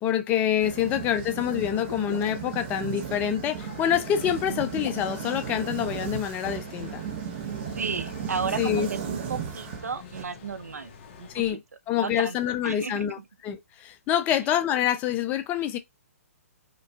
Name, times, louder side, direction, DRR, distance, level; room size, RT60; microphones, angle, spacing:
voice 1, 0.0-7.0 8.6-8.9 11.3-11.6 11.9-15.8, left 10 dB, 20° left, 0.5 m, -26 dB
sound 1, 0.6-10.2, right 8 dB, 40° right, 0.8 m, -35 dB
sound 2, 1.8-2.5 4.7-5.4 7.5-8.1, left 6 dB, 70° left, 0.5 m, -43 dB
sound 3, 3.6-11.5, left 5 dB, 35° left, 1.0 m, -47 dB
voice 2, 7.7-11.6 12.0-12.4 12.6-13.1 14.3-14.4, right 5 dB, 85° right, 0.6 m, -34 dB
5.2 x 2.3 x 2.3 m
hypercardioid pair, 140°, 8 cm